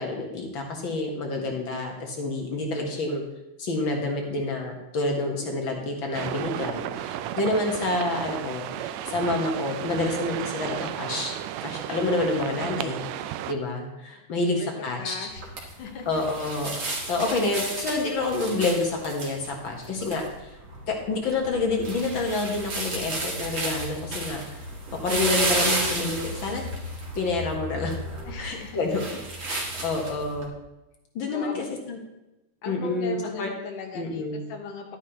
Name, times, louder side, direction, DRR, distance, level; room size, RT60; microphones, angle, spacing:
voice 1, 0.0-3.2 3.6-11.3 11.6-15.3 16.1-20.5 20.9-24.4 24.9-26.6 27.1-27.9 28.4-29.1 29.5-30.5 31.1-32.0 32.7-33.5 33.9-34.4, left 2 dB, 50° left, 1 dB, 1.7 m, -28 dB
sound 1, 6.1-13.5, right 11 dB, 85° right, 1.5 m, -33 dB
voice 2, 15.0-16.2 28.2-28.8 29.5-29.8 31.3-31.7 32.6-35.0, left 5 dB, 85° left, 1 dB, 2.9 m, -39 dB
sound 2, 15.3-30.5, right 2 dB, 35° right, 1.9 m, -32 dB
11.5 x 10.0 x 3.0 m, 0.96 s
omnidirectional pair, 3.6 m